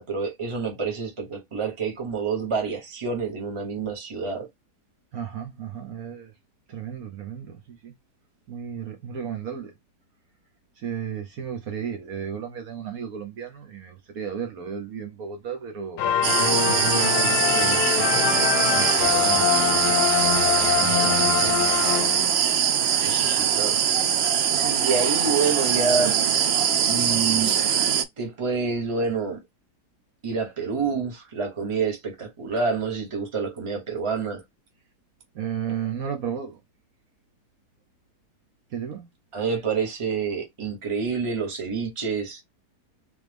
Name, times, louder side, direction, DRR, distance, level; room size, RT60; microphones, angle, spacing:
voice 1, 0.0-4.5 23.0-24.1 24.6-26.2 26.9-27.5 28.2-29.4 30.2-34.4 39.3-42.4, right 5 dB, 20° right, 1.0 m, -28 dB
voice 2, 5.1-6.3 6.7-7.9 8.5-9.7 10.8-20.0 20.8-21.6 35.3-36.6 38.7-39.1, right 8 dB, 65° right, 1.3 m, -34 dB
sound 1, 16.0-22.6, left 10 dB, 90° left, 1.2 m, -24 dB
sound 2, 16.2-28.0, right 8 dB, 85° right, 0.5 m, -22 dB
3.5 x 3.0 x 3.4 m
omnidirectional pair, 1.7 m